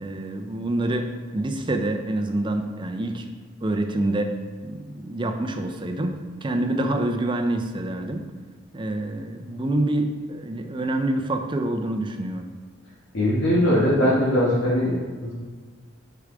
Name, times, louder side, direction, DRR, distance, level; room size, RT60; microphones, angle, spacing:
voice 1, 0.0-3.3 3.6-8.3 8.7-12.5, right 1 dB, 25° right, 6 dB, 0.5 m, -27 dB
voice 2, 13.1-15.0 15.2-15.3, equal, 90° left, -8 dB, 1.5 m, -20 dB
6.8 x 4.7 x 3.8 m, 1.5 s
head